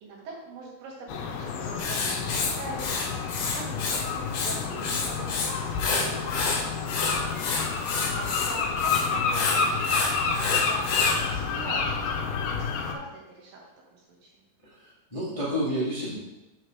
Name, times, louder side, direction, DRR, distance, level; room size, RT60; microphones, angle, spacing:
voice 1, 0.0-3.2 3.5-7.3 7.8-10.0 10.3-12.6 12.9-14.3, right 2 dB, 75° right, -2 dB, 3.2 m, -43 dB
sound 1, 1.1-13.0, left 5 dB, 85° left, 2.6 m, -29 dB
Writing, 1.8-4.0 4.3-5.5 5.8-11.2, left 4 dB, 65° left, 1.9 m, -29 dB
voice 2, 14.6-16.2, equal, 25° left, -7 dB, 0.6 m, -30 dB
7.9 x 4.4 x 4.7 m, 0.97 s
omnidirectional pair, 4.1 m